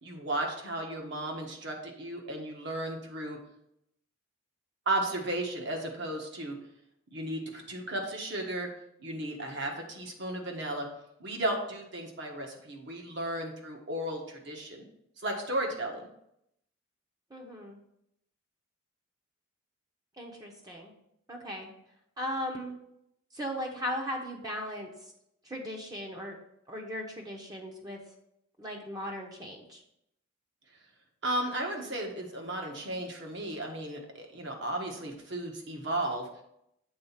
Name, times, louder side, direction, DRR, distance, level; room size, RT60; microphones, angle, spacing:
voice 1, 0.0-3.4 4.8-6.6 7.1-8.7 9.0-10.9 11.2-14.8 15.2-16.0 31.2-36.4, right 1 dB, 55° right, 1 dB, 1.4 m, -34 dB
voice 2, 17.3-17.8 20.2-20.9 21.3-21.7 22.2-22.8 23.3-25.1 25.4-26.4 26.7-28.0 28.6-29.8, equal, 20° right, 0 dB, 0.9 m, -37 dB
7.9 x 4.1 x 5.7 m, 0.77 s
head